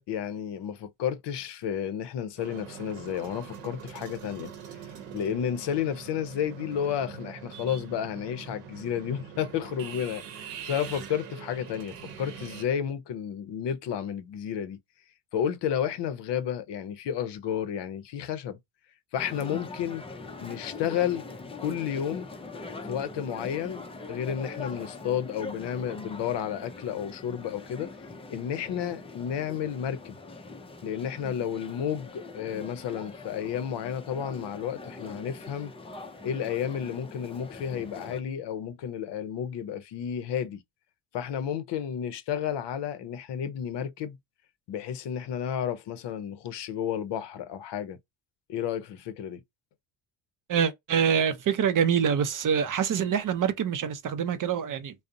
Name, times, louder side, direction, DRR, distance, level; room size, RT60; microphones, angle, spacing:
voice 1, 0.1-4.5 5.1-14.8 15.3-18.6 19.1-20.0 20.4-21.2 21.6-22.3 22.8-27.9 28.3-30.2 30.8-35.7 36.2-40.6 41.1-44.2 44.7-48.0 48.5-49.4, left 9 dB, 60° left, 0.6 m, -32 dB
sound 1, 2.4-12.6, right 7 dB, 85° right, 0.8 m, -43 dB
sound 2, 19.2-38.2, left 3 dB, 15° left, 0.3 m, -42 dB
voice 2, 50.5-54.9, right 7 dB, 40° right, 0.5 m, -25 dB
2.5 x 2.0 x 2.5 m
supercardioid pair, 70°, 49 cm